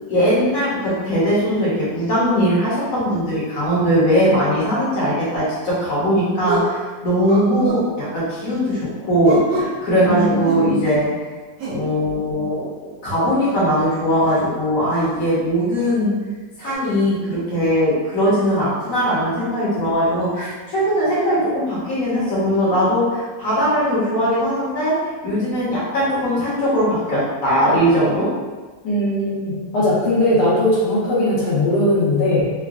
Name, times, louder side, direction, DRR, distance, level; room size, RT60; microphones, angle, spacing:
voice 1, 0.1-11.1 11.6-12.7 13.0-16.1 16.6-25.0 25.2-28.3, equal, 55° left, -8 dB, 1.4 m, -20 dB
sound 1, 5.4-5.5 6.4-6.8 7.3-7.9 9.2-9.8 10.4-11.1 11.6-11.8 13.4-13.6 14.2-14.4 14.9-15.1 15.8-15.9 16.6-16.7, right 1 dB, 75° right, 1.3 m, -27 dB
voice 2, 10.0-11.0 28.8-32.5, left 1 dB, 70° left, -9 dB, 1.5 m, -19 dB
3.9 x 2.1 x 2.4 m, 1.3 s
omnidirectional pair, 1.9 m